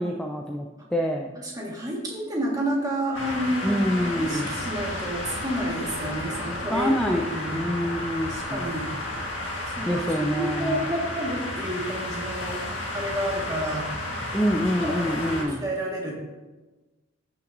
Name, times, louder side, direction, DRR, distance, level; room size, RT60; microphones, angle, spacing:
voice 1, 0.0-1.3 3.6-4.5 6.7-7.2 7.5-8.7 9.8-10.9 14.3-15.6, equal, 5° left, 1 dB, 0.4 m, -26 dB
voice 2, 1.4-7.6 8.2-8.9 9.7-12.6 12.9-13.9 14.8-16.1, equal, 20° right, -3 dB, 1.6 m, -30 dB
sound 1, 3.1-15.4, left 1 dB, 60° left, 1.9 m, -32 dB
15.0 x 5.8 x 2.6 m, 1.2 s
head